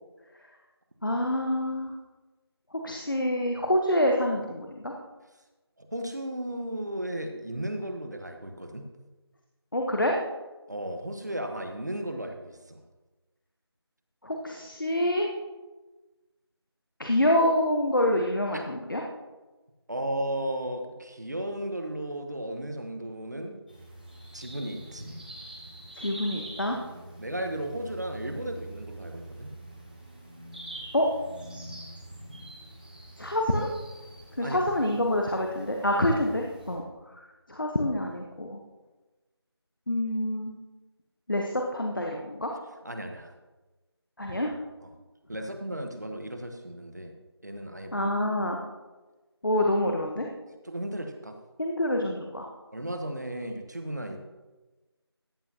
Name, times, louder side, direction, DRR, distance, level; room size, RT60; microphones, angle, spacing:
voice 1, 1.0-1.9 2.8-4.9 9.7-10.1 14.2-15.3 17.0-19.0 26.0-26.8 30.9-31.1 33.2-33.7 34.4-36.8 37.5-38.6 39.9-40.5 41.3-42.5 44.2-44.5 47.9-48.6 49.4-50.3 51.6-52.5, left 1 dB, 50° left, 1 dB, 1.1 m, -26 dB
voice 2, 5.8-8.8 10.7-12.8 18.5-18.6 19.9-23.6 24.3-25.2 26.9-29.5 34.4-34.6 35.8-36.0 42.8-43.3 44.8-44.9 45.3-47.1 47.4-48.1 50.6-51.3 52.7-54.2, right 1 dB, 40° right, 5 dB, 1.1 m, -35 dB
sound 1, 23.7-36.8, right 1 dB, 20° right, 1.3 m, -45 dB
14.5 x 9.1 x 2.9 m, 1.2 s
figure-of-eight pair, 180°, 14 cm